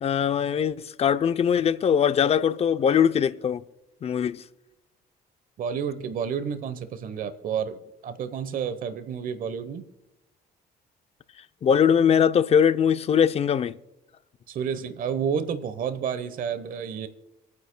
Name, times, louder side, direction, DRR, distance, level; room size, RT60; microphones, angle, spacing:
voice 1, 0.0-3.6 4.0-4.4 11.6-13.7, left 8 dB, 35° left, 0.5 m, -21 dB
voice 2, 5.6-9.8 14.5-17.1, right 7 dB, 55° right, 1.0 m, -30 dB
27.0 x 9.6 x 2.2 m
cardioid pair, 110°, 17 cm